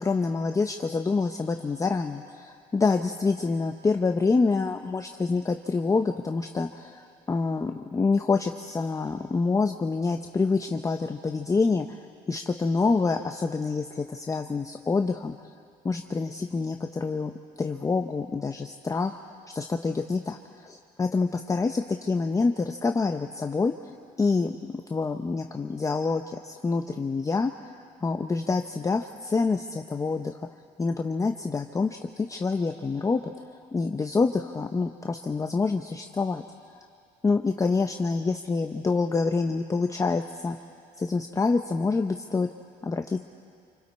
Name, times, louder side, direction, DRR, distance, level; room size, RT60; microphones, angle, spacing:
voice 1, 0.0-15.4 15.8-17.3 17.6-19.2 19.5-23.7 24.2-30.5 30.8-33.3 33.7-36.4 37.2-40.6 41.0-42.5 42.8-43.2, left 4 dB, 20° left, 5 dB, 0.7 m, -27 dB
27.0 x 25.0 x 4.2 m, 2.3 s
cardioid pair, 110°, 17 cm